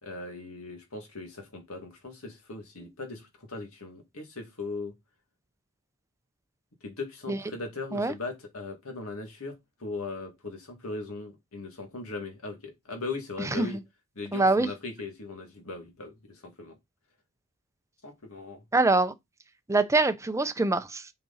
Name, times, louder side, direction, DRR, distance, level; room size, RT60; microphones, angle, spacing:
voice 1, 0.0-4.9 6.8-9.5 9.8-13.8 14.2-16.8 18.0-18.6, left 3 dB, 70° left, 2.4 m, -39 dB
voice 2, 13.4-13.8 14.3-14.7 18.7-19.1 19.7-21.0, right 3 dB, 15° right, 0.6 m, -24 dB
7.6 x 5.0 x 4.2 m
head